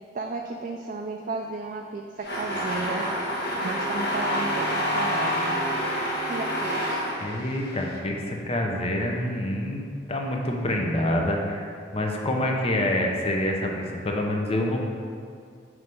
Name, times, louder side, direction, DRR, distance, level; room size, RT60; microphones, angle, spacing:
voice 1, 0.1-3.0 3.6-5.6 6.3-7.0, right 3 dB, 45° right, 2 dB, 0.3 m, -33 dB
sound 1, 2.2-8.0, equal, 65° left, 1.0 m, -28 dB
voice 2, 7.2-9.8 10.1-11.7 11.9-14.8, left 1 dB, 35° left, 1 dB, 0.7 m, -26 dB
5.9 x 3.2 x 5.3 m, 2.2 s
head